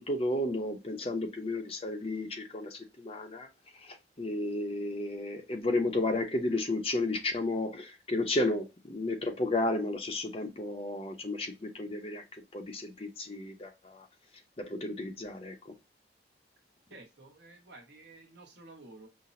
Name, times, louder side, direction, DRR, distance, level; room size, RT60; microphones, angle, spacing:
voice 1, 0.0-3.5 3.7-14.1 14.6-15.7, left 2 dB, 30° left, 0.7 m, -33 dB
voice 2, 16.9-19.1, right 2 dB, 70° right, 1.3 m, -52 dB
5.7 x 2.1 x 2.6 m
head